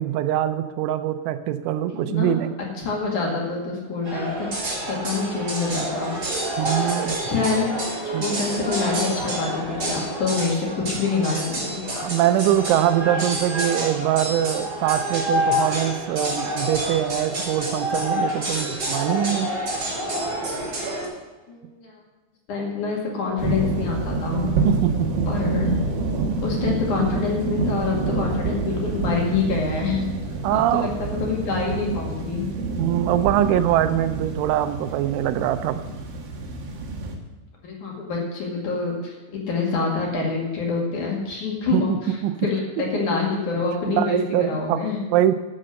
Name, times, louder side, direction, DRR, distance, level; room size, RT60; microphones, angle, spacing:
voice 1, 0.0-2.6 6.6-7.2 8.1-8.4 12.0-19.5 24.6-25.3 30.4-30.9 32.8-35.8 41.7-41.8 42.2-42.3 43.9-44.8 45.1-45.4, right 12 dB, 85° right, 10 dB, 3.2 m, -23 dB
voice 2, 2.8-4.5 4.9-6.2 6.7-7.7 8.1-11.8 21.5-21.9 22.5-24.4 25.3-25.7 26.4-30.1 30.5-32.5 37.6-45.0, left 4 dB, 50° left, -2 dB, 2.9 m, -26 dB
sound 1, 4.0-21.1, right 1 dB, 30° right, 5.1 m, -28 dB
sound 2, 23.4-37.1, right 3 dB, 60° right, 2.8 m, -27 dB
12.0 x 7.7 x 6.4 m, 1.2 s
omnidirectional pair, 5.4 m